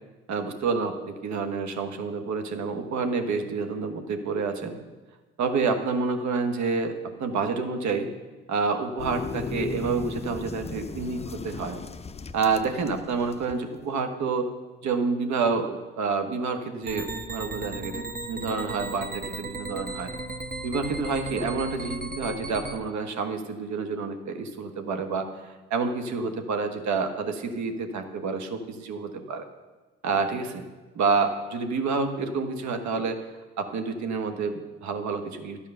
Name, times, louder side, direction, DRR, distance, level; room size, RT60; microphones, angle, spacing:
voice 1, 0.3-4.8 5.4-8.1 8.5-11.8 12.3-14.5 14.8-20.1 20.6-29.5 30.0-30.6 30.9-33.2 33.6-35.6, right 4 dB, 60° right, 6 dB, 1.4 m, -28 dB
sound 1, 9.0-13.5 13.8-13.9, left 4 dB, 20° left, 0.5 m, -37 dB
sound 2, 16.8-22.8, right 2 dB, 25° right, 1.3 m, -36 dB
12.5 x 5.1 x 6.8 m, 1.2 s
hypercardioid pair, 55°, 32 cm